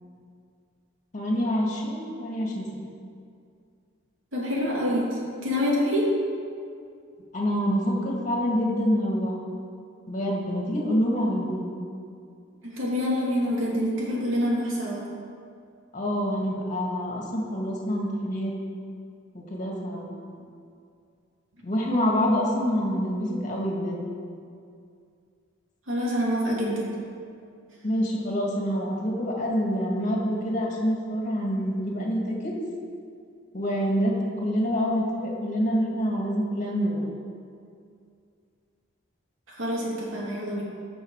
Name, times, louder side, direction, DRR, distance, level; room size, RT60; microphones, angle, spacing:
voice 1, 1.1-2.6 7.3-9.4 10.1-11.7 15.9-18.5 19.3-20.4 21.6-24.0 27.8-32.5 33.5-34.1 34.4-37.0, equal, 40° left, -2 dB, 2.1 m, -26 dB
voice 2, 4.3-6.0 12.6-15.0 25.9-26.9 39.5-40.6, equal, 70° right, -4 dB, 2.6 m, -26 dB
14.0 x 6.6 x 4.8 m, 2.3 s
head